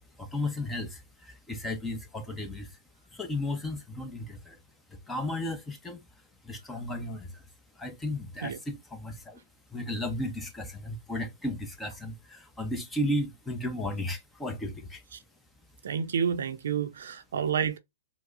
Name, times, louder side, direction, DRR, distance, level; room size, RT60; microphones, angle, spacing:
voice 1, 0.2-2.8 3.1-4.6 4.9-6.1 6.4-7.5 7.7-9.4 9.7-15.0, left 1 dB, 10° left, 0.7 m, -34 dB
voice 2, 15.8-17.8, right 7 dB, 70° right, 0.5 m, -29 dB
4.6 x 2.0 x 2.4 m
hypercardioid pair, 130°, 0 cm